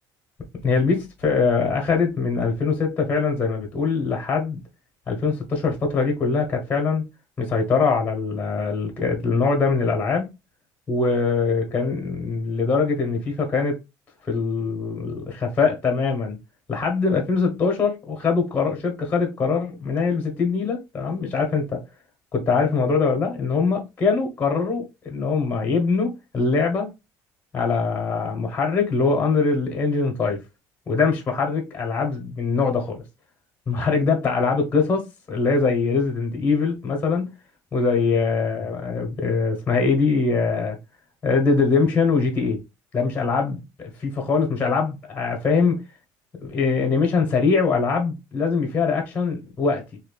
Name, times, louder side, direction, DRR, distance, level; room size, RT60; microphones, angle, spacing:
voice 1, 0.6-4.6 5.1-7.0 7.4-10.3 10.9-13.8 14.2-16.4 16.7-21.8 22.3-26.9 27.5-30.4 30.9-33.0 33.7-37.3 37.7-40.8 41.2-42.6 42.9-45.8 46.4-49.8, left 4 dB, 20° left, 0.9 m, -22 dB
4.2 x 2.8 x 2.3 m
cardioid pair, 145°, 8 cm